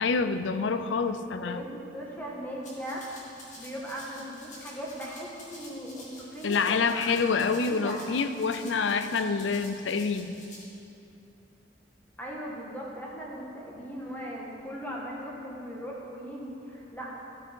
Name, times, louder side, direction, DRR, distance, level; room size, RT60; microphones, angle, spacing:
voice 1, 0.0-1.6 6.4-10.4, left 5 dB, 75° left, 10 dB, 0.5 m, -27 dB
voice 2, 1.4-3.0 3.5-8.4 12.2-17.1, equal, 10° left, -4 dB, 1.6 m, -39 dB
Rattle (instrument), 2.6-10.6, left 2 dB, 40° left, 2.0 m, -49 dB
13.5 x 6.9 x 4.5 m, 2.8 s
head